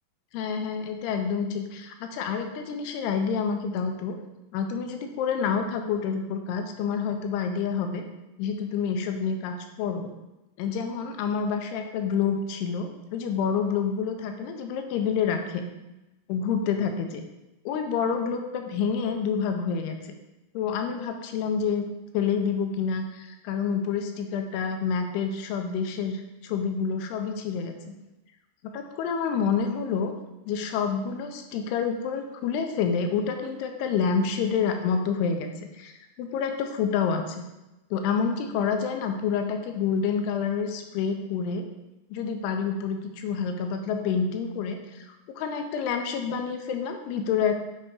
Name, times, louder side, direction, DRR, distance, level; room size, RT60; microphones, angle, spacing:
voice 1, 0.3-4.1 4.5-8.0 8.4-10.1 10.6-15.7 16.3-17.2 17.7-20.1 20.5-21.9 22.1-27.7 28.7-30.1 30.5-37.5 37.9-41.7 42.1-45.1 45.3-47.6, left 6 dB, 80° left, 5 dB, 2.7 m, -28 dB
8.6 x 3.3 x 4.7 m, 0.99 s
omnidirectional pair, 4.7 m